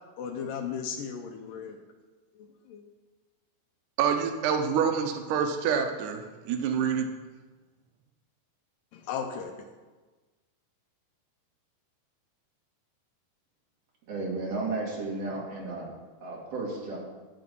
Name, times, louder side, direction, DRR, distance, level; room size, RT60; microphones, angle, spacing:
voice 1, 0.2-1.8 2.4-2.8 8.9-9.7, left 7 dB, 75° left, 4 dB, 2.1 m, -36 dB
voice 2, 4.0-7.1, right 7 dB, 85° right, 5 dB, 1.8 m, -27 dB
voice 3, 14.1-15.9 16.2-17.0, right 3 dB, 45° right, -2 dB, 2.7 m, -33 dB
11.5 x 7.6 x 5.4 m, 1.3 s
omnidirectional pair, 4.7 m